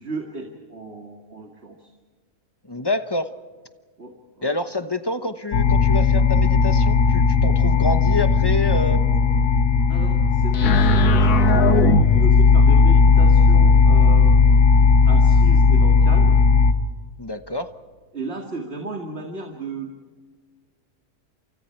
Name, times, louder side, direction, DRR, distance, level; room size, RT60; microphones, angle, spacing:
voice 1, 0.0-1.9 4.0-4.5 9.9-14.4 15.1-16.4 18.1-19.9, right 2 dB, 45° right, 3 dB, 2.3 m, -35 dB
voice 2, 2.7-3.3 4.4-9.0 17.2-17.7, left 2 dB, 20° left, 10 dB, 0.9 m, -27 dB
sound 1, 5.5-16.7, left 4 dB, 85° left, 1.7 m, -15 dB
29.5 x 27.5 x 4.6 m, 1.5 s
omnidirectional pair, 1.6 m